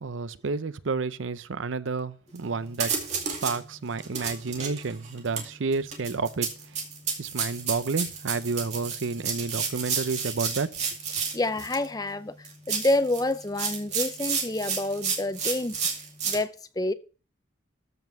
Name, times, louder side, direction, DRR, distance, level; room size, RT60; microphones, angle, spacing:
voice 1, 0.0-2.9 3.4-6.5 7.2-10.8, right 4 dB, 80° right, 0.6 m, -30 dB
sound 1, 2.4-2.5 2.7-3.6 4.0-11.9 12.4-16.4, right 6 dB, 35° right, 2.4 m, -31 dB
voice 2, 11.3-15.8 16.2-16.9, left 2 dB, 20° left, 0.5 m, -28 dB
14.0 x 5.5 x 5.9 m
head